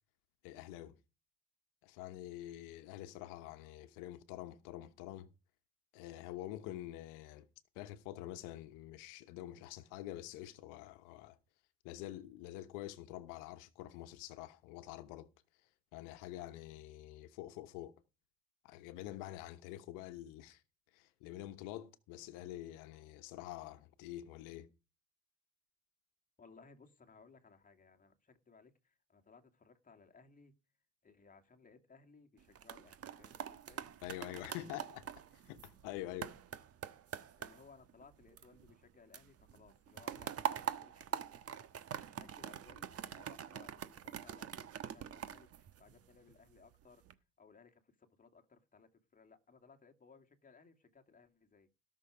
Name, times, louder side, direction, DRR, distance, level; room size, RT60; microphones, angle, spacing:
voice 1, 0.4-1.0 1.8-5.3 5.9-7.5 7.7-11.4 11.8-15.3 15.9-17.9 18.6-20.6 20.9-24.7 34.0-35.1 35.3-36.3, left 14 dB, 80° left, 1.1 m, -47 dB
voice 2, 26.4-30.5 31.0-33.8 34.1-34.7 37.4-41.6 42.0-43.7 44.0-47.0 47.4-51.7, left 4 dB, 25° left, 2.4 m, -62 dB
sound 1, 32.4-38.9 39.1-46.3 46.8-47.1, right 9 dB, 50° right, 1.3 m, -44 dB
17.5 x 6.5 x 5.0 m
supercardioid pair, 80°, 31 cm